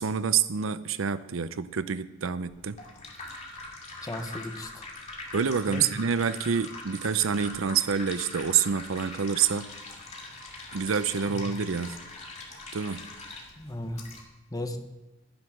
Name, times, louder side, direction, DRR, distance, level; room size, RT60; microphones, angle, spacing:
voice 1, 0.0-2.8 5.3-9.7 10.7-12.0 12.7-13.1, right 7 dB, 70° right, 14 dB, 0.6 m, -27 dB
sound 1, 2.5-14.2, left 2 dB, 35° left, 2.4 m, -42 dB
voice 2, 4.0-4.9 5.7-5.9 11.3-11.4 13.6-14.0 14.5-14.8, left 1 dB, 20° left, 6 dB, 1.1 m, -35 dB
12.0 x 10.0 x 6.2 m, 1.1 s
head